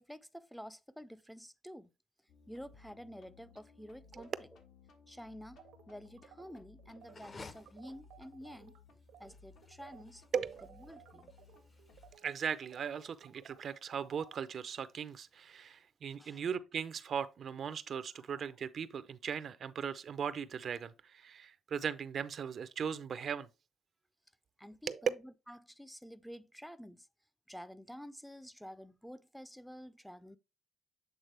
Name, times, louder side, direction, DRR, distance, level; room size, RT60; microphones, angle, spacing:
voice 1, 0.0-1.9 2.5-4.5 5.1-8.8 9.2-10.2 10.8-11.3 16.2-16.4 18.1-18.5 24.6-27.1 27.5-30.4, equal, ahead, 0.4 m, -50 dB
sound 1, 2.3-12.1, left 5 dB, 80° left, 1.4 m, -61 dB
sound 2, 5.6-8.8 9.1-9.3 9.6-14.4, right 10 dB, 85° right, 0.9 m, -58 dB
sound 3, 7.0-13.1, left 3 dB, 40° left, 0.7 m, -56 dB
voice 2, 10.3-10.7 12.2-23.5 24.9-25.1, right 7 dB, 55° right, 0.5 m, -38 dB
8.1 x 3.6 x 3.3 m
cardioid pair, 90°, 0 cm